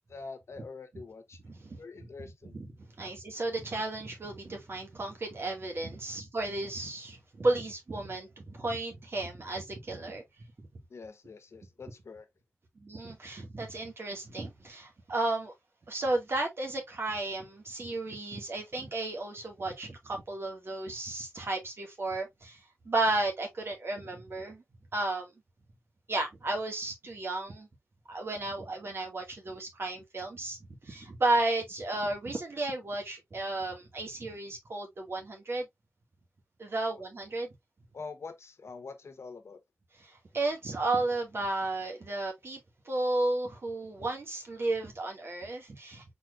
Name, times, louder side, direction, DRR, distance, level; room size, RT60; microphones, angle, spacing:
voice 1, 0.0-1.4 1.7-2.6 3.0-3.1 10.9-12.3 37.9-39.6, left 4 dB, 85° left, 1.1 m, -45 dB
voice 2, 1.4-2.1 2.5-2.7 3.0-10.2 10.6-10.7 12.8-15.5 15.9-24.6 24.9-25.3 26.1-27.7 28.1-30.6 30.8-35.7 36.6-37.5 39.9-46.1, right 2 dB, 60° right, 2.0 m, -33 dB
4.5 x 4.2 x 2.5 m
wide cardioid pair, 100°, 5 cm